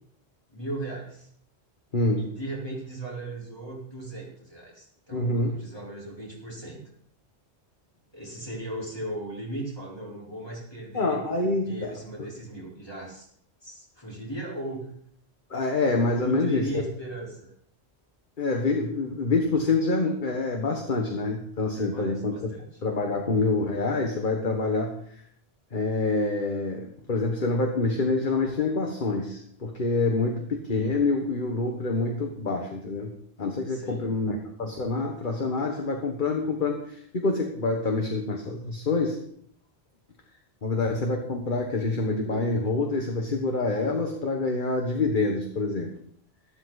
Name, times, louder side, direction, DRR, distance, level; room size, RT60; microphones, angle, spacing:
voice 1, 0.5-1.3 2.2-6.8 8.1-11.2 11.6-13.3 13.6-14.9 16.2-17.5 21.8-22.6 33.7-34.1, right 1 dB, 25° left, -4 dB, 4.4 m, -37 dB
voice 2, 1.9-2.2 5.1-5.6 10.9-12.3 15.5-16.8 18.4-22.3 22.8-25.2 25.7-33.1 33.4-39.2 40.6-45.9, left 3 dB, 50° left, 2 dB, 1.6 m, -26 dB
13.0 x 13.0 x 4.1 m, 0.65 s
omnidirectional pair, 1.1 m